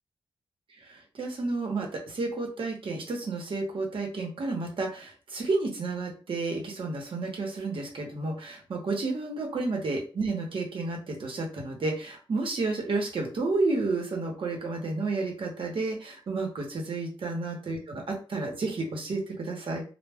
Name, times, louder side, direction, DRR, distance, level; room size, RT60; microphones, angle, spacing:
voice 1, 1.1-19.8, right 3 dB, 70° right, 0 dB, 0.9 m, -31 dB
2.1 x 2.1 x 3.4 m, 0.37 s
wide cardioid pair, 115°, 9 cm